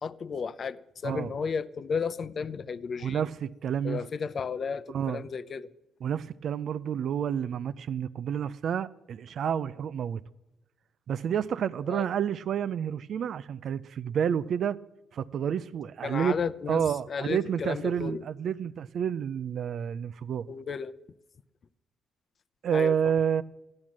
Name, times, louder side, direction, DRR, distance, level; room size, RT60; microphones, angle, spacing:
voice 1, 0.0-3.3 3.8-5.7 11.9-12.0 16.0-18.2 20.5-20.9 22.7-22.9, left 5 dB, 45° left, 0.6 m, -33 dB
voice 2, 3.0-4.0 4.9-5.2 6.0-10.2 11.1-14.8 15.1-16.3 16.7-20.5 22.6-23.4, right 8 dB, 65° right, 0.5 m, -29 dB
14.5 x 10.5 x 7.4 m
cardioid pair, 90°, 0 cm